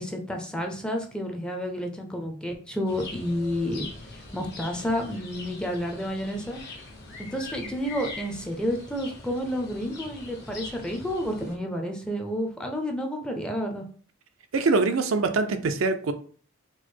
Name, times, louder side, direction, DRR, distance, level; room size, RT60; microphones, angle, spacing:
voice 1, 0.0-3.9 4.3-6.6 7.2-13.8, equal, 5° left, 2 dB, 0.5 m, -30 dB
sound 1, 2.9-11.6, left 3 dB, 55° left, 1.2 m, -42 dB
voice 2, 14.5-16.1, right 3 dB, 75° right, 7 dB, 0.5 m, -23 dB
4.6 x 2.1 x 4.3 m, 0.44 s
head